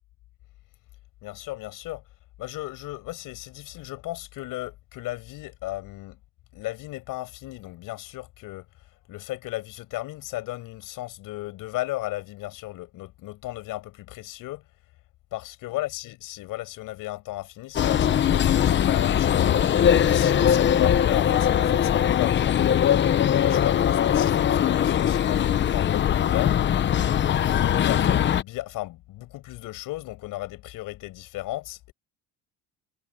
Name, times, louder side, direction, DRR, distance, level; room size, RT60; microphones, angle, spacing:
voice 1, 1.2-2.0 2.4-6.2 6.5-8.6 9.1-14.6 15.3-19.7 20.1-26.7 27.6-31.9, left 17 dB, 65° left, 6.8 m, -35 dB
sound 1, 17.7-28.4, left 9 dB, 30° left, 0.8 m, -21 dB
cardioid pair, 145°, 35 cm